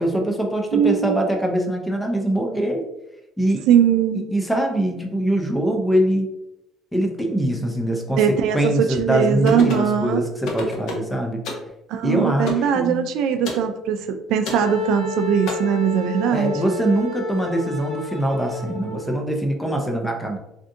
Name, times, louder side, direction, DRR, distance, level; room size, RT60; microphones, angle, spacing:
voice 1, 0.0-2.9 3.4-3.7 4.3-6.3 6.9-8.2 8.5-11.4 12.0-13.0 16.3-20.4, right 1 dB, 5° left, 2 dB, 0.4 m, -23 dB
voice 2, 0.7-1.2 3.7-4.2 8.2-10.2 11.9-16.5, right 8 dB, 65° right, 7 dB, 0.3 m, -20 dB
sound 1, 9.5-9.9 10.4-11.1 11.4-11.7 12.5-12.7 13.4-13.7 14.4-14.7 15.5-15.6, left 2 dB, 60° left, 0.7 m, -28 dB
Wind instrument woodwind instrument, 14.5-19.1, left 5 dB, 15° right, 0.8 m, -31 dB
3.5 x 2.6 x 2.5 m, 0.89 s
cardioid pair, 175°, 0 cm